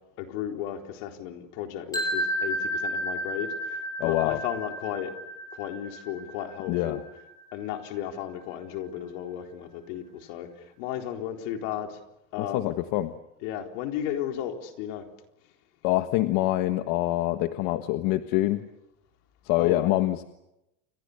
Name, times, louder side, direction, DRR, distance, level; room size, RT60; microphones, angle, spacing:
voice 1, 0.2-5.1 5.5-7.0 7.5-12.0 12.3-12.8 13.4-15.0 19.6-19.9, left 10 dB, 85° left, 4 dB, 4.2 m, -34 dB
sound 1, 1.9-7.8, equal, 10° left, 7.8 m, -32 dB
voice 2, 4.0-4.4 6.7-7.0 12.4-13.1 15.8-18.7 19.4-20.2, left 16 dB, 70° left, 9 dB, 1.5 m, -25 dB
29.5 x 24.5 x 6.8 m, 0.87 s
cardioid pair, 145°, 36 cm